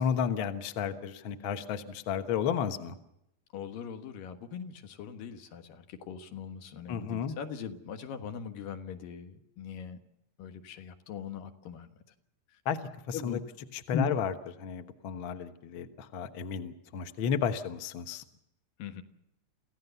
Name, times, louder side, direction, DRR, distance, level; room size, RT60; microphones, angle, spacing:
voice 1, 0.0-3.0 6.9-7.4 12.6-12.8 13.1-13.4 13.7-14.3 14.6-18.2, left 7 dB, 55° left, 8 dB, 1.5 m, -32 dB
voice 2, 3.5-10.0 10.4-11.9 13.1-13.4 13.9-14.1 18.8-19.0, left 5 dB, 85° left, 7 dB, 3.1 m, -39 dB
27.5 x 16.0 x 6.9 m, 0.83 s
omnidirectional pair, 3.9 m